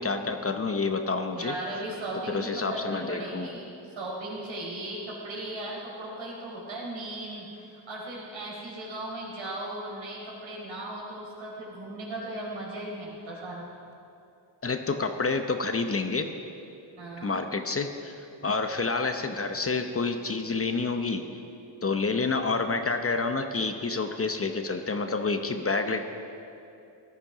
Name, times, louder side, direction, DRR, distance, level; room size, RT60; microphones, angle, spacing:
voice 1, 0.0-1.5 2.3-3.5 14.6-16.3 17.2-18.1 18.4-21.3 21.8-26.0, left 4 dB, 30° left, 6 dB, 0.9 m, -28 dB
voice 2, 1.3-13.7 17.0-17.4, right 1 dB, 75° right, -3 dB, 4.4 m, -37 dB
17.5 x 12.5 x 5.0 m, 2.7 s
cardioid pair, 100°, 47 cm